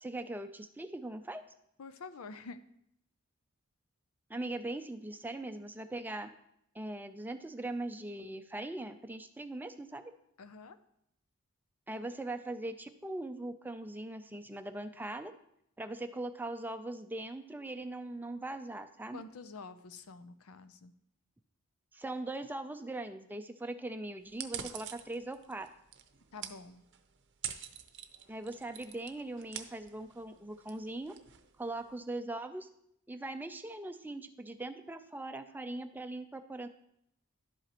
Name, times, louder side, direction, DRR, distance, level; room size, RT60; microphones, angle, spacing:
voice 1, 0.0-1.4 4.3-6.3 6.7-10.1 11.9-15.3 15.8-19.2 21.9-25.7 28.3-31.1 31.6-32.7 33.1-36.7, right 2 dB, 10° right, 8 dB, 0.4 m, -40 dB
voice 2, 1.8-2.6 10.4-10.8 19.1-20.9 26.3-26.8, left 4 dB, 90° left, 12 dB, 0.6 m, -48 dB
sound 1, 24.3-32.0, right 9 dB, 55° right, 0.7 m, -47 dB
11.5 x 8.0 x 3.0 m, 0.75 s
head